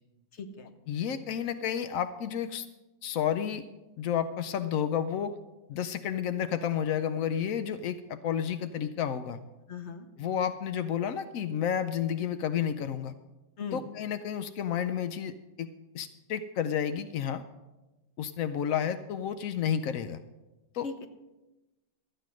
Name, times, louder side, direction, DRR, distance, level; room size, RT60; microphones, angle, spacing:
voice 1, 0.3-0.7 9.7-10.1 13.6-13.8 20.8-21.1, left 5 dB, 45° left, 8 dB, 1.0 m, -38 dB
voice 2, 0.9-2.7 3.0-3.6 4.0-5.4 5.7-9.4 10.2-13.1 13.7-15.7 15.9-17.4 18.2-20.2 20.7-20.9, left 8 dB, 85° left, 11 dB, 0.7 m, -31 dB
13.5 x 9.0 x 6.1 m, 1.1 s
omnidirectional pair, 2.1 m